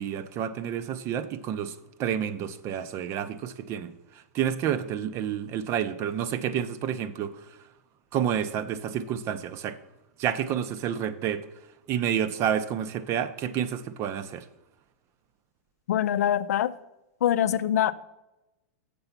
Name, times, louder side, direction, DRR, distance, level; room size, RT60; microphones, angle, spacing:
voice 1, 0.0-3.9 4.3-7.3 8.1-9.8 10.2-11.4 11.9-14.5, right 9 dB, 30° right, 0.5 m, -29 dB
voice 2, 15.9-16.7 17.2-17.9, left 10 dB, 80° left, 0.5 m, -24 dB
6.8 x 6.8 x 5.8 m
hypercardioid pair, 140°, 8 cm